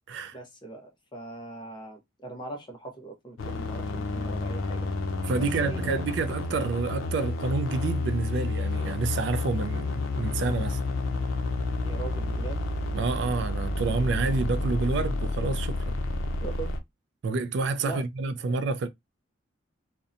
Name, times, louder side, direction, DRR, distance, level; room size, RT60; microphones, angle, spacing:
voice 1, 0.3-4.9 5.4-6.0 11.8-12.6 16.4-16.7 17.8-18.5, right 3 dB, 25° left, 0.7 m, -41 dB
sound 1, 3.4-16.8, left 2 dB, 90° left, 0.5 m, -30 dB
voice 2, 5.2-10.8 12.9-16.0 17.2-18.9, right 3 dB, 60° right, 0.3 m, -29 dB
2.7 x 2.1 x 2.5 m
head